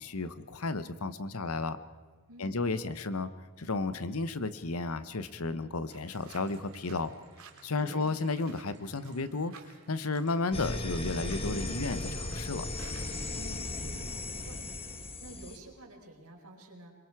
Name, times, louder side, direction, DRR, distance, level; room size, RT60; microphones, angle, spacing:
voice 1, 0.0-1.8 2.4-3.3 3.6-7.1 7.6-9.5 9.9-12.7, left 3 dB, 75° left, 13 dB, 1.1 m, -33 dB
voice 2, 2.3-3.1 7.7-8.1 13.3-16.9, right 1 dB, 85° right, 0 dB, 5.2 m, -51 dB
sound 1, 5.9-13.3, right 6 dB, 70° right, 3.0 m, -56 dB
sound 2, 6.1-10.3 10.6-11.2 11.7-12.0 12.4-12.5, right 2 dB, 50° right, 2.2 m, -53 dB
sound 3, 10.5-15.6, left 2 dB, 25° left, 1.5 m, -36 dB
26.0 x 22.5 x 4.8 m, 1.5 s
head